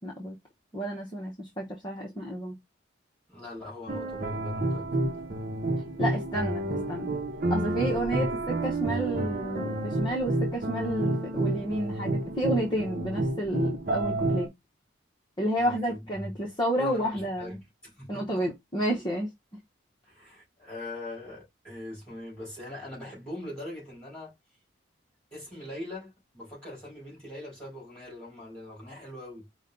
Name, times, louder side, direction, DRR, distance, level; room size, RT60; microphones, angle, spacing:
voice 1, 0.0-0.4 0.7-2.6 6.0-7.1 7.5-14.5 15.4-17.6 18.1-19.3, equal, 25° left, 1.0 m, -31 dB
voice 2, 3.3-4.9 15.6-16.3 16.8-18.5 20.1-24.3 25.3-29.5, left 1 dB, 5° left, 3.5 m, -41 dB
sound 1, 3.9-14.5, right 2 dB, 50° right, 0.8 m, -29 dB
5.2 x 2.3 x 3.7 m
head